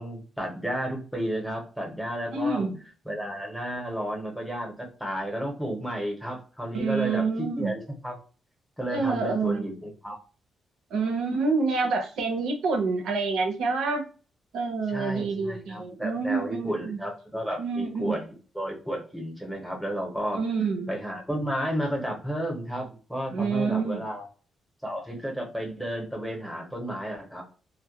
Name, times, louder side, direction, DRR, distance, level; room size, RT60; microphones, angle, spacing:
voice 1, 0.0-2.7 3.0-8.2 8.8-10.2 14.9-18.2 18.5-20.4 20.9-24.3 24.8-27.4, equal, ahead, 0 dB, 0.7 m, -32 dB
voice 2, 2.3-2.8 6.7-7.7 8.9-9.6 10.9-14.0 14.5-17.0 17.6-18.2 20.3-20.9 23.3-24.0, right 4 dB, 75° right, 3 dB, 0.5 m, -27 dB
2.2 x 2.1 x 2.7 m, 0.38 s
cardioid pair, 170°, 0 cm